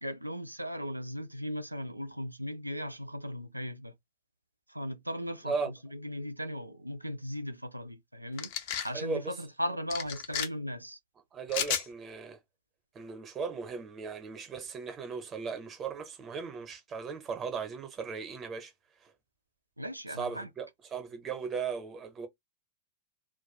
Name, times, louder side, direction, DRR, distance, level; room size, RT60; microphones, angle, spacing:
voice 1, 0.0-3.9 4.7-11.0 19.8-20.5, equal, 85° right, 0.5 m, -37 dB
sound 1, 8.4-8.9 9.9-10.5 11.5-11.9, left 9 dB, 50° left, 0.6 m, -32 dB
voice 2, 8.9-9.3 11.3-12.4 12.9-18.7 19.0-19.1 20.2-22.3, right 5 dB, 25° right, 0.9 m, -37 dB
2.5 x 2.4 x 4.1 m
figure-of-eight pair, 90°, 0 cm